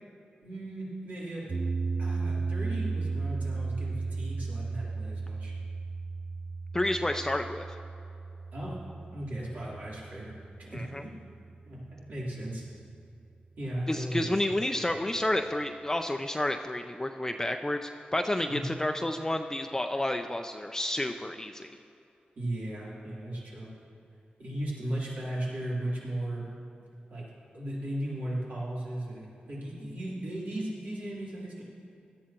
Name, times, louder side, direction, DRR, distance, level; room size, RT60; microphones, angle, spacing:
voice 1, 0.4-1.6 2.0-5.5 8.5-8.8 9.1-10.3 10.6-11.1 11.7-12.6 13.6-14.7 18.5-18.6 22.3-23.7 24.4-26.4 27.1-27.2 27.5-31.6, right 1 dB, 70° right, -7 dB, 3.5 m, -36 dB
sound 1, 1.5-11.7, right 4 dB, 35° right, 0.5 m, -35 dB
voice 2, 6.7-7.6 10.7-11.0 13.9-21.7, left 1 dB, 15° left, 5 dB, 0.5 m, -30 dB
17.5 x 12.5 x 3.0 m, 2.7 s
wide cardioid pair, 75°, 3 cm